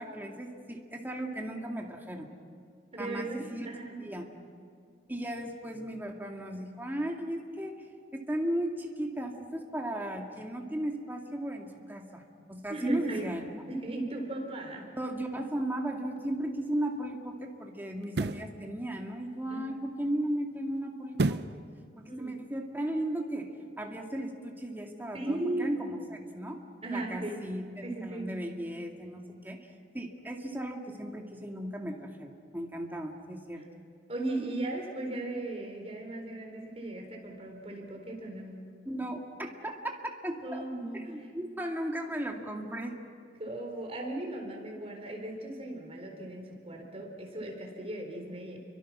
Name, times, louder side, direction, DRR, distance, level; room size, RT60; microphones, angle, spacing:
voice 1, 0.0-2.3 3.0-3.7 4.0-4.3 5.1-7.7 8.1-13.4 15.0-21.6 22.0-26.6 26.9-29.7 29.9-33.6 38.9-39.9 40.2-40.6 40.9-43.0, right 1 dB, 10° right, 1 dB, 2.2 m, -36 dB
voice 2, 2.9-4.0 12.7-13.3 13.7-14.9 19.5-19.7 22.0-22.6 25.1-25.7 26.8-27.4 27.8-28.3 34.1-38.7 40.4-41.3 43.4-48.6, right 2 dB, 35° right, 2 dB, 4.2 m, -37 dB
sound 1, 16.2-16.3 18.0-18.5 21.1-21.6 22.1-22.2, right 2 dB, 65° right, 0.7 m, -29 dB
29.5 x 24.5 x 6.1 m, 2.1 s
head